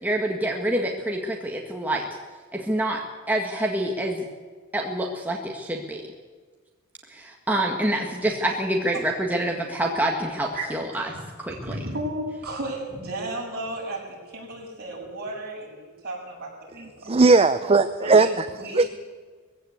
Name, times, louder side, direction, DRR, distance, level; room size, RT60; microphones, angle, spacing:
voice 1, 0.0-2.0 2.5-3.0 3.3-4.2 4.7-6.0 7.1-11.1 11.4-11.8, right 1 dB, 10° right, 0 dB, 1.8 m, -26 dB
voice 2, 11.5-16.5 16.7-17.1 18.0-18.9, right 1 dB, 45° right, -2 dB, 7.5 m, -34 dB
voice 3, 17.0-18.5 18.7-18.8, right 3 dB, 25° right, 10 dB, 0.7 m, -17 dB
21.0 x 16.0 x 8.3 m, 1.5 s
head